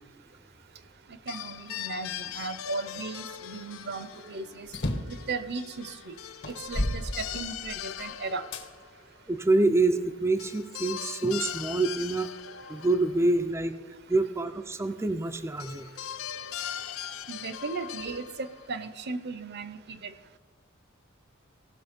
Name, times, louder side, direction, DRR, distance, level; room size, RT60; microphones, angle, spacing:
sound 1, 1.3-9.0 10.4-13.8 15.6-18.9, left 10 dB, 80° left, 0.5 m, -40 dB
voice 1, 1.3-4.7 5.1-6.1 6.5-8.4 17.3-20.1, right 4 dB, 55° right, 14 dB, 0.7 m, -36 dB
sound 2, 4.7-5.2 5.9-6.0 6.4-7.9 8.5-8.7 9.4-10.4, left 1 dB, 60° left, 1.3 m, -32 dB
voice 2, 9.3-12.3 12.7-13.8 14.1-15.9, right 2 dB, 15° right, 6 dB, 0.4 m, -26 dB
17.0 x 6.3 x 5.1 m, 1.4 s
head